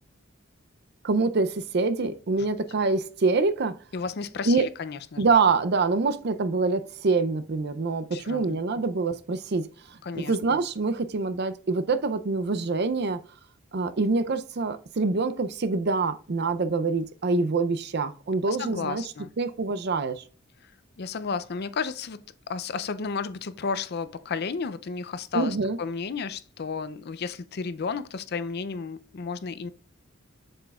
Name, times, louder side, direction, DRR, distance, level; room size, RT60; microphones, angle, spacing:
voice 1, 1.0-3.8 4.5-4.6 5.2-13.2 13.7-19.0 19.4-20.2 25.3-25.8, right 3 dB, 55° right, 0.5 m, -25 dB
voice 2, 3.9-5.2 8.1-8.8 10.0-10.6 18.5-19.3 21.0-22.2 22.5-29.7, left 5 dB, 55° left, 0.5 m, -33 dB
7.5 x 6.8 x 2.4 m
head